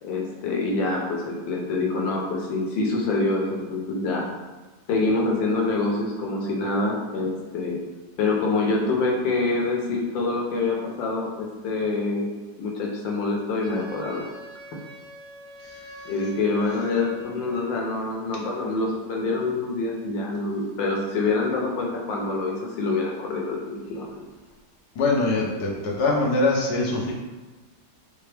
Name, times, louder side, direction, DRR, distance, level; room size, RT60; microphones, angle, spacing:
voice 1, 0.0-4.3 4.9-7.8 8.2-12.3 12.6-14.3 16.0-24.2, left 3 dB, 85° left, -1 dB, 1.5 m, -26 dB
Wind instrument woodwind instrument, 13.6-17.7, left 1 dB, 65° right, 1.4 m, -44 dB
voice 2, 25.0-27.1, left 2 dB, 65° left, -3 dB, 1.4 m, -23 dB
4.5 x 3.4 x 3.3 m, 1.2 s
omnidirectional pair, 2.0 m